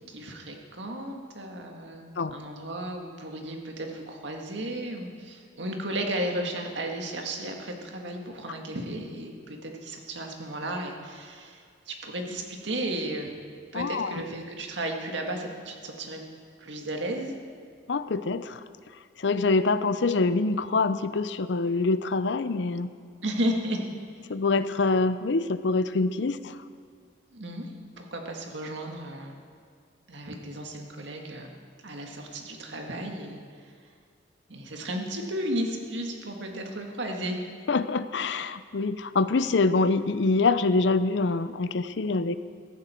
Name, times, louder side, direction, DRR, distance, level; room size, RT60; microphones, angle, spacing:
voice 1, 0.0-13.4 13.7-16.2 16.6-17.3 23.2-23.9 27.3-27.7 28.0-29.4 30.1-33.4 34.5-37.4, right 1 dB, 80° right, 2 dB, 1.9 m, -34 dB
voice 2, 13.7-14.1 17.9-18.6 19.2-22.9 24.3-26.6 37.7-42.4, left 3 dB, 75° left, 13 dB, 0.6 m, -25 dB
15.5 x 15.0 x 4.5 m, 2.2 s
head